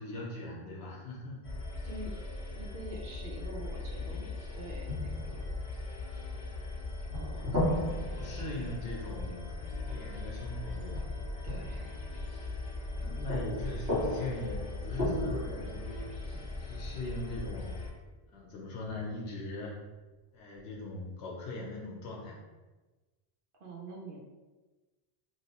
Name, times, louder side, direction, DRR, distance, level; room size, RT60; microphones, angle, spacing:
voice 1, 0.0-1.4 7.3-7.4 8.2-9.5 9.9-11.1 12.8-16.1 16.6-17.8 18.3-19.8 20.3-22.4, left 2 dB, 80° left, -2 dB, 0.9 m, -40 dB
sound 1, 1.4-17.9, left 2 dB, 40° left, 0.5 m, -39 dB
voice 2, 1.8-2.2 2.5-5.5 7.1-7.6 11.4-12.0 23.5-24.2, right 1 dB, 65° right, -2 dB, 0.8 m, -46 dB
sound 2, 3.9-4.5 4.9-6.7 7.1-10.1 10.9-13.0 13.3-17.6 18.8-19.5, left 1 dB, 85° right, 1.5 m, -37 dB
2.9 x 2.8 x 2.8 m, 1.2 s
omnidirectional pair, 1.0 m